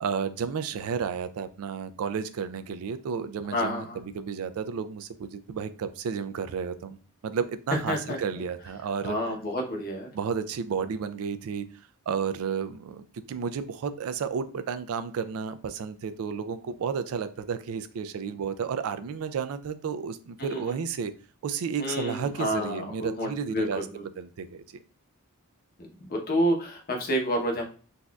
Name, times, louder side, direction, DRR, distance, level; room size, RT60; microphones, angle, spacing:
voice 1, 0.0-3.9 4.1-7.0 7.2-9.2 10.1-11.7 12.1-21.1 21.4-23.9 24.2-24.8, right 6 dB, 65° right, 12 dB, 0.3 m, -32 dB
voice 2, 3.5-4.0 7.9-8.2 9.0-10.1 20.4-20.8 21.8-24.0 26.1-27.6, equal, 45° left, 1 dB, 0.8 m, -29 dB
4.0 x 2.4 x 2.3 m, 0.38 s
head